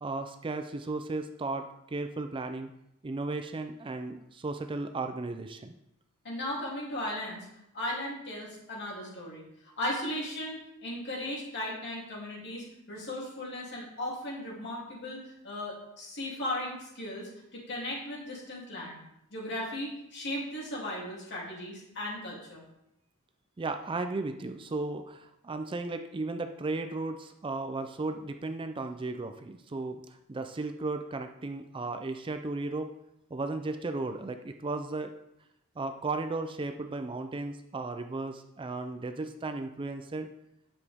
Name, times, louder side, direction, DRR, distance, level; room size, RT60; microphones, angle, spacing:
voice 1, 0.0-2.7 3.0-5.7 23.6-30.0 30.3-32.9 33.3-35.1 35.8-40.3, right 3 dB, 25° right, 7 dB, 0.4 m, -35 dB
voice 2, 6.2-7.5 7.7-9.4 9.8-15.2 15.4-19.0 19.3-22.6, left 1 dB, 55° left, -4 dB, 2.9 m, -36 dB
9.6 x 7.2 x 3.5 m, 0.82 s
head